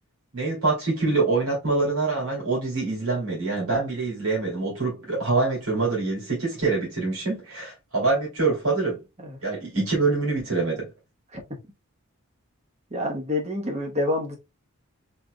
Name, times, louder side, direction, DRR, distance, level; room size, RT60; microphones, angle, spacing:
voice 1, 0.3-9.0 9.4-10.9, right 3 dB, 90° right, 2.7 m, -25 dB
voice 2, 12.9-14.4, left 1 dB, 30° right, 1.0 m, -27 dB
4.5 x 3.8 x 2.2 m
head